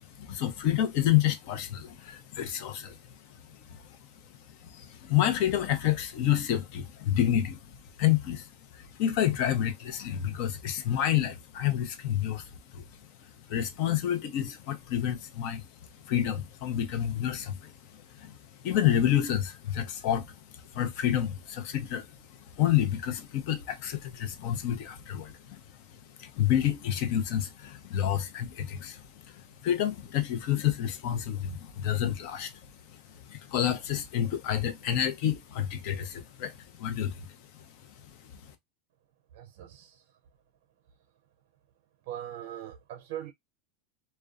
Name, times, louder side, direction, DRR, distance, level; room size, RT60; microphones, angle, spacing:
voice 1, 0.0-3.1 3.5-4.0 4.6-7.6 8.0-12.9 13.5-15.7 16.0-18.4 18.6-22.1 22.4-25.8 26.2-32.6 32.9-37.3 37.5-37.7 38.0-38.5, left 11 dB, 60° left, 0.6 m, -29 dB
voice 2, 39.3-40.2 42.1-43.3, right 11 dB, 65° right, 0.4 m, -41 dB
2.4 x 2.2 x 2.3 m
supercardioid pair, 120°, 0 cm